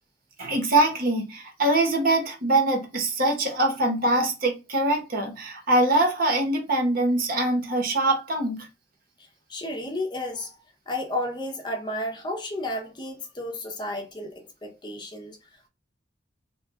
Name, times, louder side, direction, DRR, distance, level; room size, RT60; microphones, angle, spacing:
voice 1, 0.4-8.7, right 2 dB, 50° right, 1.0 m, -23 dB
voice 2, 9.2-10.6 10.9-15.7, left 1 dB, 25° left, 0.6 m, -33 dB
3.0 x 2.3 x 3.5 m
head